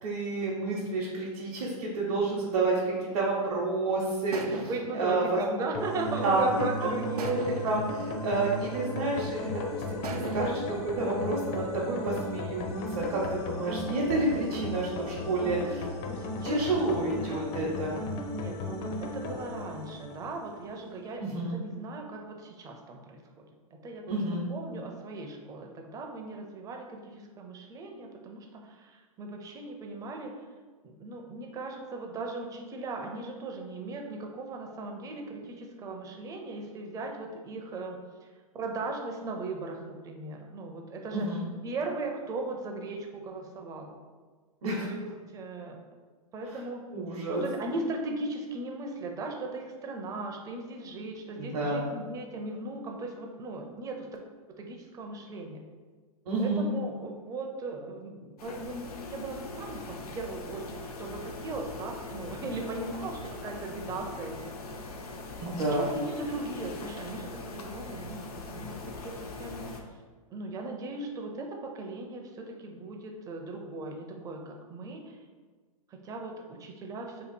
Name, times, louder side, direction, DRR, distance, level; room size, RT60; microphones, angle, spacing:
voice 1, 0.0-4.6 4.9-5.4 6.2-7.4 7.6-15.9 16.4-18.0 21.2-21.5 24.1-24.5 41.1-41.5 44.6-44.9 46.9-47.5 51.4-51.9 56.3-56.7 65.4-65.9, right 2 dB, 65° right, -5 dB, 0.8 m, -30 dB
sound 1, 3.1-3.7 4.3-6.6 7.2-9.4 10.0-12.3, right 4 dB, 90° right, 0.4 m, -42 dB
voice 2, 4.5-7.3 16.0-17.2 18.3-23.5 23.7-24.2 24.5-30.4 30.8-38.3 38.5-41.3 41.6-44.0 44.8-45.8 46.3-46.8 47.3-54.1 54.6-55.6 56.4-64.6 65.4-69.8 70.3-75.2 75.9-77.2, right 2 dB, 20° right, 2 dB, 0.5 m, -38 dB
sound 2, 5.7-20.8, left 1 dB, 35° left, 0.5 m, -36 dB
sound 3, 58.4-69.8, left 3 dB, 80° left, 0.6 m, -41 dB
2.8 x 2.5 x 4.2 m, 1.5 s
hypercardioid pair, 125°, 19 cm